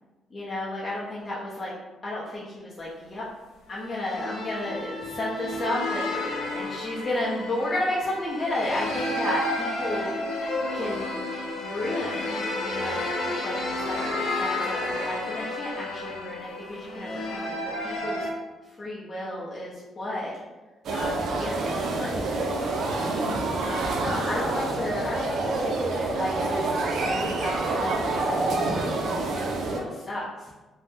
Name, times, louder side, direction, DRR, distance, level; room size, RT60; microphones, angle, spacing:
voice 1, 0.3-1.7 2.0-3.2 3.7-10.1 10.7-11.2 11.6-13.2 13.4-18.2 18.8-20.3 20.9-23.0 23.6-29.2 29.5-30.3, left 1 dB, 30° left, -7 dB, 0.6 m, -33 dB
sound 1, 3.7-18.3, left 2 dB, 75° left, 0.5 m, -31 dB
sound 2, 20.8-29.8, right 2 dB, 65° right, 0.4 m, -27 dB
2.7 x 2.1 x 3.4 m, 1.2 s
cardioid pair, 90°, 0 cm